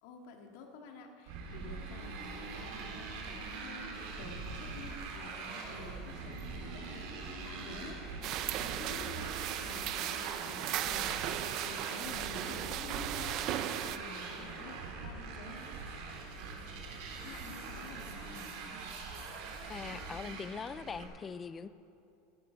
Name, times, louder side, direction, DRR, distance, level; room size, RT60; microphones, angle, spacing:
voice 1, 0.0-15.7 17.2-18.5, left 3 dB, 65° left, 2 dB, 2.2 m, -50 dB
Motorcycle, 1.3-21.0, right 4 dB, 65° right, 2.8 m, -43 dB
sound 1, 8.2-14.0, right 12 dB, 45° right, 0.7 m, -36 dB
voice 2, 19.7-21.7, left 5 dB, 20° left, 14 dB, 0.5 m, -42 dB
16.5 x 11.5 x 5.3 m, 2.6 s
supercardioid pair, 140°, 0 cm